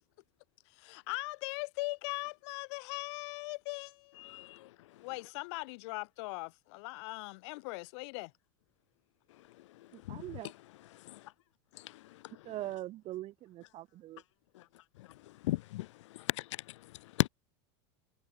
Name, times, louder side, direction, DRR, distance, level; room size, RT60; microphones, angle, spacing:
voice 1, 0.7-4.5 5.0-8.3, left 27 dB, 70° left, 3.8 m, -40 dB
voice 2, 4.2-4.7 10.1-10.2 11.0-11.2 11.8-12.0 15.4-15.9 16.1-16.5 17.2-17.3, left 17 dB, 90° left, 0.8 m, -34 dB
voice 3, 9.9-10.5 12.4-14.2, right 15 dB, 40° right, 1.2 m, -42 dB
supercardioid pair, 130°, 15 cm